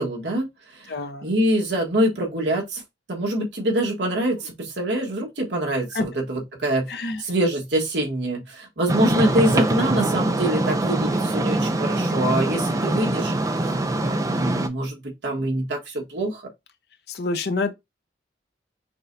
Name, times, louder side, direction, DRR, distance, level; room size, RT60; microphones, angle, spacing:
voice 1, 0.0-0.9 1.2-2.8 3.1-16.4, right 1 dB, 70° right, 1.4 m, -25 dB
voice 2, 0.9-1.3 5.9-6.1 6.9-7.2 17.1-17.7, left 3 dB, 60° left, 0.6 m, -27 dB
sound 1, 8.9-14.7, right 2 dB, 20° right, 0.3 m, -23 dB
5.9 x 2.2 x 2.6 m
head